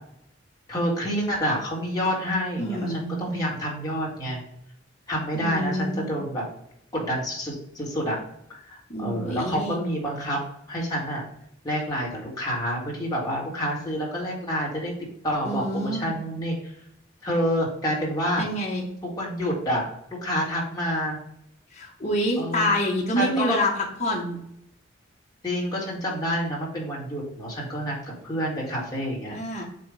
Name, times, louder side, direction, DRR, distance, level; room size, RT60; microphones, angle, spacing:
voice 1, 0.7-4.4 5.1-6.5 6.9-8.2 8.5-10.4 10.7-11.2 11.6-14.9 15.2-16.7 17.2-18.4 19.0-19.9 20.2-21.2 22.4-22.7 23.2-23.6 25.4-29.4, equal, 20° left, -4 dB, 1.8 m, -28 dB
voice 2, 2.6-3.4 5.3-6.1 8.9-9.8 15.4-16.2 18.4-18.9 21.7-23.7 24.0-24.4 29.3-29.6, equal, 35° left, -2 dB, 1.5 m, -27 dB
7.5 x 2.6 x 5.0 m, 0.75 s
head